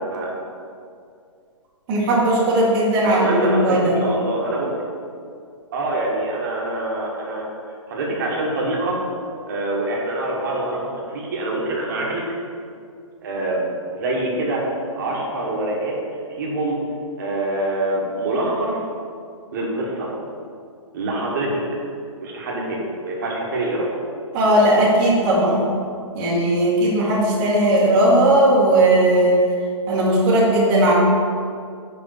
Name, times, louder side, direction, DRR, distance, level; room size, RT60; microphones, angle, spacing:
voice 1, 1.9-4.0 24.3-25.7 26.1-29.4 29.9-30.9, right 1 dB, 20° right, -7 dB, 1.4 m, -17 dB
voice 2, 3.0-4.7 5.7-7.4 7.9-9.0 9.5-12.3 13.2-13.6 13.9-14.6 15.0-15.9 16.4-16.8 17.2-18.8 19.5-20.1 20.9-21.6 22.2-23.9, right 2 dB, 35° right, -3 dB, 1.5 m, -25 dB
5.5 x 5.0 x 6.5 m, 2.3 s
hypercardioid pair, 165°, 17 cm